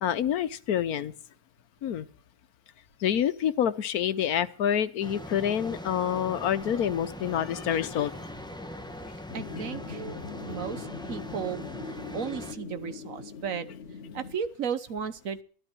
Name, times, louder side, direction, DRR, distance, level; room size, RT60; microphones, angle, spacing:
voice 1, 0.0-1.1 1.8-2.1 3.0-8.1 10.5-10.6, left 9 dB, 80° left, 14 dB, 1.4 m, -27 dB
sound 1, 5.0-12.5, left 1 dB, 5° left, 1.3 m, -41 dB
sound 2, 9.3-14.4, left 4 dB, 50° left, 1.2 m, -41 dB
voice 2, 9.3-10.0 10.4-11.6 11.9-13.7 14.1-15.4, right 7 dB, 65° right, 12 dB, 1.5 m, -34 dB
13.5 x 13.0 x 6.2 m, 0.44 s
omnidirectional pair, 1.6 m